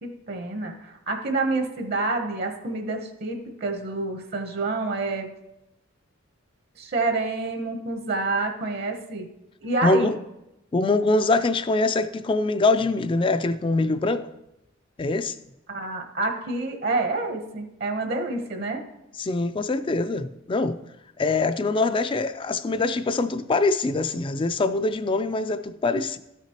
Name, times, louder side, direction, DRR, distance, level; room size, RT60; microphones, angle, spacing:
voice 1, 0.0-5.3 6.8-9.3 9.6-10.2 15.7-18.8, right 3 dB, 55° right, 0.9 m, -28 dB
voice 2, 9.8-10.1 10.7-14.3 15.0-15.4 19.2-20.8 21.2-26.2, left 3 dB, 25° left, 0.3 m, -23 dB
13.0 x 5.9 x 2.9 m
head